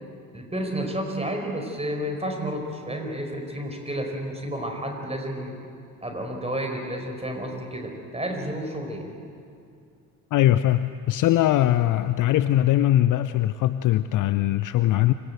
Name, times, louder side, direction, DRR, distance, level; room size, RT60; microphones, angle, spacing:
voice 1, 0.3-5.6 6.0-9.1, right 1 dB, 15° right, 3 dB, 4.8 m, -31 dB
voice 2, 10.3-15.1, left 13 dB, 40° left, 14 dB, 0.6 m, -21 dB
25.5 x 17.0 x 8.0 m, 2.4 s
figure-of-eight pair, 50°, 48 cm